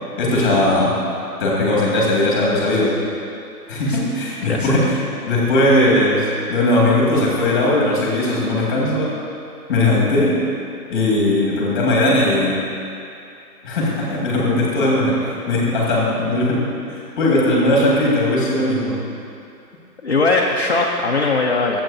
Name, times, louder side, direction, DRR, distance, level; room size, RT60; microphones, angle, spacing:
voice 1, 0.2-0.9 1.4-2.9 3.7-5.0 5.3-9.1 9.7-10.3 10.9-12.6 13.6-19.0, left 1 dB, 10° left, -5 dB, 1.6 m, -18 dB
voice 2, 4.4-4.7 20.0-21.8, left 3 dB, 40° left, -2 dB, 0.6 m, -19 dB
21.5 x 7.9 x 2.6 m, 2.6 s
hypercardioid pair, 165°, 50 cm